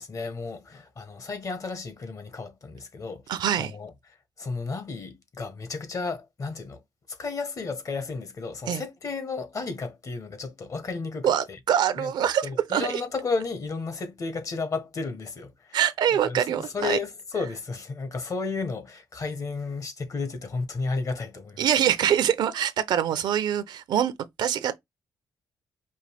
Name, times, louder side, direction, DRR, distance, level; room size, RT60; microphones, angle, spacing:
voice 1, 0.0-3.2 3.6-3.9 4.4-6.8 7.1-11.6 12.0-12.1 12.4-15.8 16.1-21.7, left 4 dB, 45° left, 1.2 m, -33 dB
voice 2, 3.3-3.7 8.7-8.8 11.2-13.0 15.7-17.0 21.6-24.1 24.4-24.8, right 9 dB, 80° right, 0.6 m, -24 dB
5.2 x 2.3 x 3.4 m
cardioid pair, 75°, 7 cm